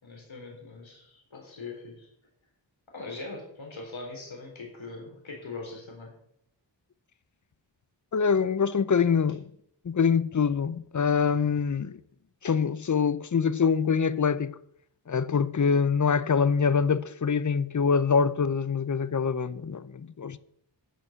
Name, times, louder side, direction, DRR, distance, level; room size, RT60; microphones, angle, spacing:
voice 1, 0.0-2.1 2.9-6.1, left 3 dB, 85° left, 4.0 m, -41 dB
voice 2, 8.1-9.5 9.8-12.0 12.4-14.5 15.1-20.4, left 6 dB, 40° left, 0.7 m, -25 dB
12.5 x 5.5 x 7.9 m
wide cardioid pair, 55°, 45 cm